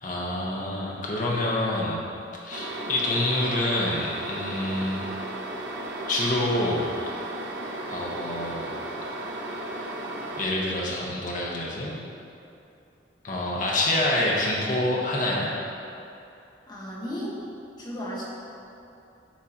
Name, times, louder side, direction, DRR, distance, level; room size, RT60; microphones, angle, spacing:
voice 1, 0.0-2.0 2.4-5.0 6.1-6.8 7.9-8.7 10.4-11.9 13.2-15.5, left 1 dB, 45° left, -4 dB, 1.0 m, -27 dB
sound 1, 2.5-10.5, right 1 dB, 90° right, 0.8 m, -35 dB
voice 2, 16.7-17.3 17.8-18.2, equal, 25° left, -6 dB, 1.2 m, -34 dB
10.0 x 3.7 x 2.9 m, 2.7 s
head